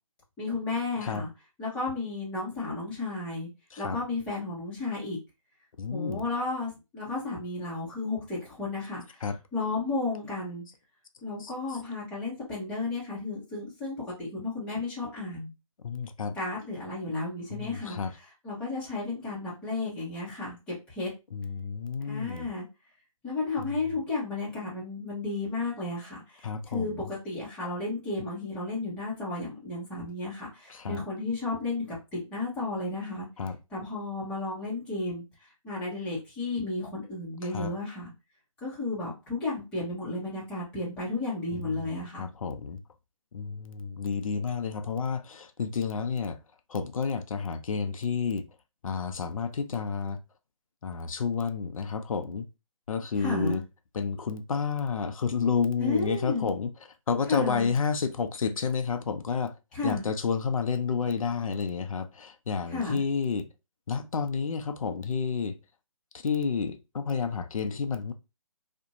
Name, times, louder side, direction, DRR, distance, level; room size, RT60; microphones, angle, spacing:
voice 1, 0.4-1.3 1.6-3.5 3.8-5.2 5.9-9.2 9.5-10.6 11.2-15.5 16.3-18.0 18.4-21.1 22.0-22.6 23.2-33.3 33.7-35.2 35.6-38.1 38.6-42.3 53.2-53.6 55.8-56.5 57.3-57.7 59.7-60.1 62.7-63.0, left 3 dB, 5° left, 0.7 m, -33 dB
voice 2, 5.8-6.2 9.2-9.4 11.4-11.5 15.8-16.4 17.5-18.1 21.3-22.5 23.6-23.7 26.4-27.1 30.7-31.0 33.4-33.6 37.4-37.7 41.5-42.8 43.3-46.4 46.7-48.5 48.8-50.2 50.8-52.5 52.9-53.6 53.9-56.7 57.1-59.6 59.8-63.5 63.9-65.6 66.1-68.1, left 5 dB, 70° left, 0.5 m, -30 dB
2.5 x 2.1 x 2.8 m
figure-of-eight pair, 155°, 18 cm